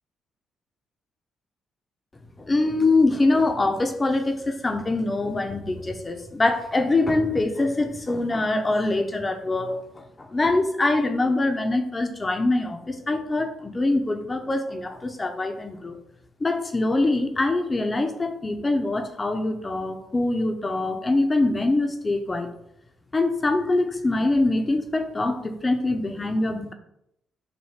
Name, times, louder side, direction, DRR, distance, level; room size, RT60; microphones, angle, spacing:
voice 1, 2.4-16.0 16.4-22.5 23.1-26.7, left 2 dB, 25° left, 6 dB, 0.8 m, -24 dB
7.7 x 2.6 x 5.7 m, 0.77 s
cardioid pair, 90°, 0 cm